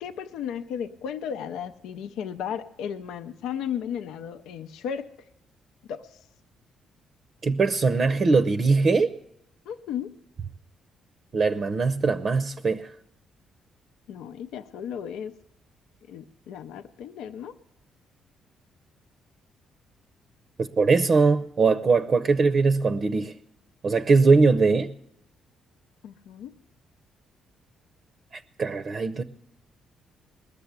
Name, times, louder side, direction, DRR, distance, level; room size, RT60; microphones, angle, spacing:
voice 1, 0.0-5.3 5.9-6.2 9.7-10.1 14.1-15.3 16.1-17.6 26.0-26.5, left 8 dB, 85° left, 0.6 m, -35 dB
voice 2, 7.4-9.1 11.3-12.9 20.6-23.3 23.8-24.9 28.6-29.2, right 4 dB, 45° right, 0.6 m, -21 dB
20.0 x 6.8 x 8.2 m
cardioid pair, 90°, 0 cm